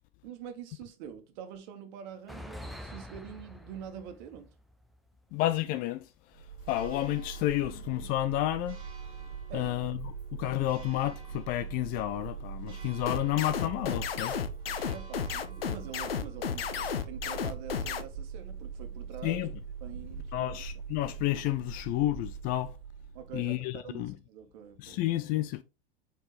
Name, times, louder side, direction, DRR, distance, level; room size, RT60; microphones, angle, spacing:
voice 1, 0.2-4.5 9.5-9.8 14.9-16.6 17.0-19.5 19.8-20.6 23.1-25.0, right 8 dB, 50° right, 1.6 m, -45 dB
sound 1, 2.1-6.7 7.0-7.1 8.3-8.5 10.7-11.9 12.9-13.1 13.6-13.7 14.1-14.2 16.1-16.2 16.9-17.0 19.3-19.6 20.1-20.5 21.0-21.5, equal, ahead, 0.8 m, -49 dB
voice 2, 5.3-6.1 6.7-8.8 9.5-10.1 10.4-14.5 19.2-19.5 20.3-22.7 23.3-24.1 24.8-25.6, left 15 dB, 30° left, 0.4 m, -30 dB
Church bell, 6.3-23.6, right 6 dB, 15° right, 2.5 m, -42 dB
sound 2, 13.1-18.0, left 7 dB, 70° left, 0.9 m, -33 dB
7.5 x 4.5 x 3.4 m
figure-of-eight pair, 95°, 30 cm